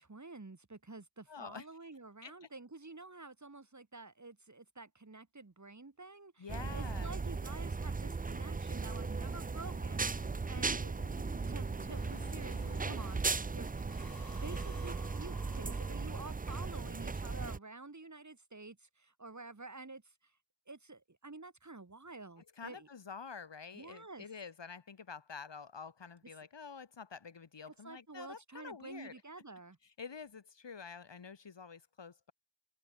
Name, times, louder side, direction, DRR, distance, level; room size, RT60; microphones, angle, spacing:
voice 1, 0.0-11.0 11.5-13.7 14.4-20.3 20.7-22.9 23.7-24.3 27.8-29.8, right 3 dB, 40° right, 1.8 m, -50 dB
voice 2, 1.3-1.7 2.2-2.5 6.4-7.1 22.4-29.2 30.0-32.3, left 5 dB, 75° left, 1.2 m, -48 dB
sound 1, 6.5-17.6, right 4 dB, 20° right, 0.4 m, -37 dB
sound 2, 8.1-13.3 13.7-16.5, left 2 dB, 55° left, 6.0 m, -56 dB
wide cardioid pair, 50°, 44 cm